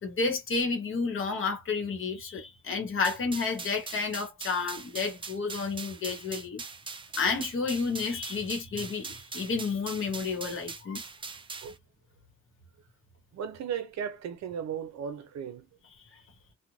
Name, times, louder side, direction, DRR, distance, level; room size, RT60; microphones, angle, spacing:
voice 1, 0.0-6.6 7.2-11.0 16.1-16.2, left 4 dB, 45° left, 1.0 m, -31 dB
sound 1, 3.0-11.8, right 4 dB, 20° right, 0.3 m, -42 dB
voice 2, 13.3-15.7, right 8 dB, 65° right, 0.6 m, -36 dB
2.5 x 2.1 x 3.1 m
cardioid pair, 150°, 29 cm